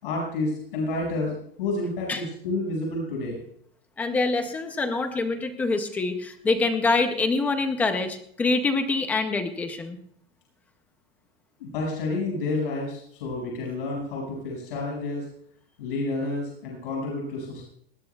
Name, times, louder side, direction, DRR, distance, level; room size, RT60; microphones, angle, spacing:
voice 1, 0.0-3.4 11.6-15.2 15.8-17.6, left 2 dB, 65° left, -2 dB, 5.7 m, -30 dB
voice 2, 4.0-10.0, left 3 dB, 5° left, 7 dB, 0.4 m, -25 dB
19.5 x 18.5 x 2.3 m, 0.65 s
supercardioid pair, 180°, 30 cm